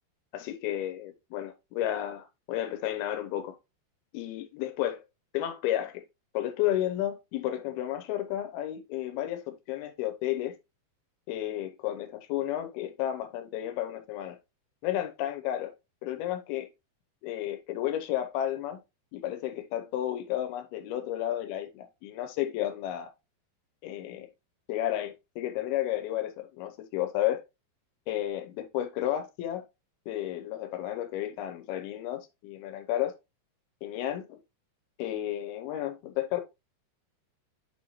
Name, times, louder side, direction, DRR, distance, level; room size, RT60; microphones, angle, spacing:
voice 1, 0.3-3.6 4.1-5.0 5.3-6.0 6.3-10.6 11.3-14.4 14.8-15.7 16.0-16.7 17.2-18.8 19.1-23.1 23.8-24.3 24.7-27.4 28.1-29.6 30.1-33.1 33.8-34.4 35.0-36.4, left 12 dB, 80° left, 2.5 m, -32 dB
8.4 x 4.2 x 3.0 m
omnidirectional pair, 4.7 m